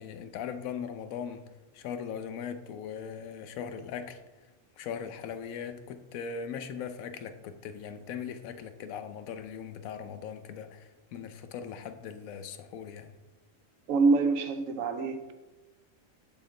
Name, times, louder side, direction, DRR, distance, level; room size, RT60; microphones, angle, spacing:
voice 1, 0.0-4.2 4.8-13.1, left 7 dB, 90° left, 1.0 m, -39 dB
voice 2, 13.9-15.3, right 4 dB, 80° right, 1.0 m, -25 dB
7.6 x 4.3 x 3.7 m
omnidirectional pair, 1.4 m